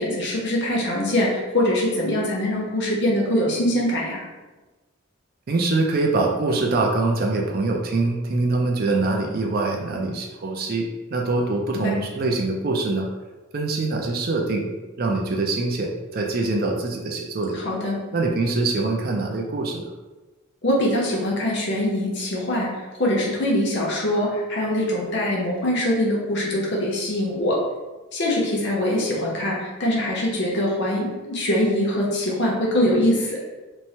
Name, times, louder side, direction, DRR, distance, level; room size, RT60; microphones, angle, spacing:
voice 1, 0.0-4.2 17.5-18.0 20.6-22.7 23.0-27.6 28.1-33.4, left 1 dB, 50° left, -3 dB, 0.7 m, -23 dB
voice 2, 5.5-13.1 13.5-14.7 15.0-17.6 18.1-19.8, right 3 dB, 45° right, 1 dB, 0.4 m, -24 dB
3.0 x 2.1 x 2.7 m, 1.2 s
head